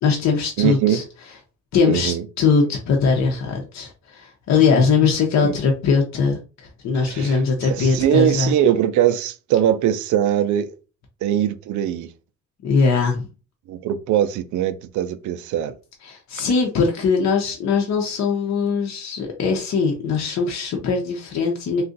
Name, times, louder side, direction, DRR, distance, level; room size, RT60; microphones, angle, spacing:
voice 1, 0.0-1.0 1.7-8.5 12.6-13.3 16.0-21.8, left 5 dB, 65° left, 0.8 m, -21 dB
voice 2, 0.6-1.0 1.9-2.2 5.4-5.6 7.0-7.4 7.7-10.7 11.2-12.1 13.7-15.7, right 10 dB, 75° right, 0.5 m, -21 dB
2.5 x 2.4 x 3.8 m
cardioid pair, 90°, 30 cm